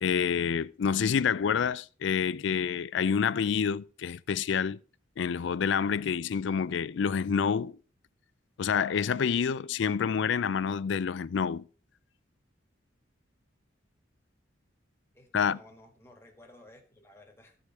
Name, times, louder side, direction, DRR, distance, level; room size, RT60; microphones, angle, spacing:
voice 1, 0.0-4.8 5.2-7.8 8.6-11.6 15.3-15.6, left 6 dB, 65° left, 0.4 m, -28 dB
voice 2, 15.1-17.6, left 1 dB, 10° left, 1.6 m, -55 dB
14.0 x 4.9 x 4.1 m
head